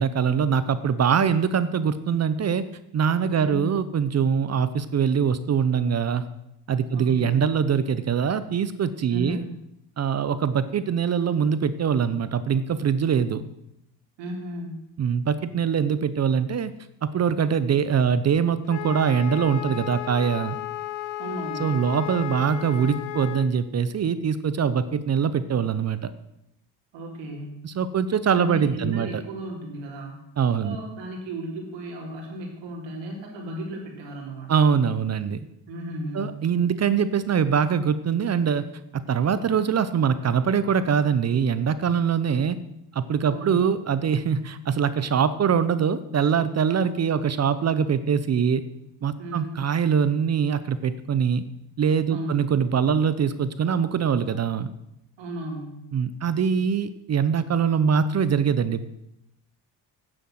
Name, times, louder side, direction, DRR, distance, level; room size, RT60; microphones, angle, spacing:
voice 1, 0.0-2.6 2.9-6.2 6.7-9.4 10.0-13.4 15.0-16.7 17.0-20.6 21.6-26.1 27.6-29.1 30.4-30.8 34.5-35.4 36.1-38.7 38.9-42.6 42.9-48.6 49.0-51.4 51.8-54.7 55.9-58.8, right 7 dB, 40° right, 14 dB, 0.7 m, -23 dB
voice 2, 3.4-3.7 6.9-7.4 9.1-9.6 14.2-14.9 21.2-21.8 26.9-27.6 28.3-30.3 30.6-34.7 35.7-36.5 43.3-43.6 49.2-49.6 52.1-52.5 55.2-55.8, right 1 dB, 90° right, -2 dB, 4.0 m, -35 dB
Wind instrument woodwind instrument, 18.7-23.5, left 13 dB, 80° left, 1.3 m, -34 dB
9.7 x 7.8 x 7.8 m, 0.84 s
cardioid pair, 110°, 43 cm